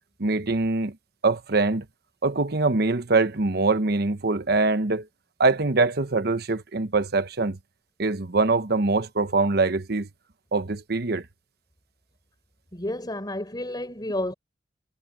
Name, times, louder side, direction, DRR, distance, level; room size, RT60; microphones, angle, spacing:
voice 1, 0.2-1.0 1.2-1.8 2.2-5.0 5.4-7.6 8.0-10.1 10.5-11.2, right 3 dB, 60° right, 1.1 m, -23 dB
voice 2, 12.7-14.3, left 1 dB, 25° left, 4.6 m, -31 dB
head